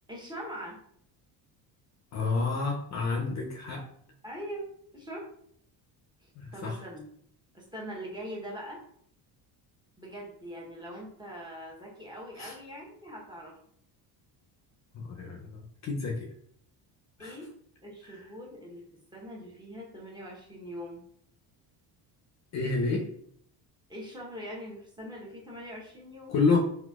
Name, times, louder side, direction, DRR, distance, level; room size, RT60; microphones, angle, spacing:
voice 1, 0.1-0.8 4.2-4.6 4.9-5.2 6.2-7.0 7.5-8.8 10.0-13.5 17.2-17.5 17.8-18.9 19.1-21.0 23.9-26.3, equal, 10° right, -3 dB, 0.8 m, -42 dB
voice 2, 2.1-3.8 6.4-6.8 12.4-12.5 14.9-16.2 17.2-17.3 22.5-23.1 26.3-26.6, left 4 dB, 40° left, 1 dB, 0.5 m, -29 dB
3.9 x 2.7 x 2.3 m, 0.67 s
cardioid pair, 135°, 43 cm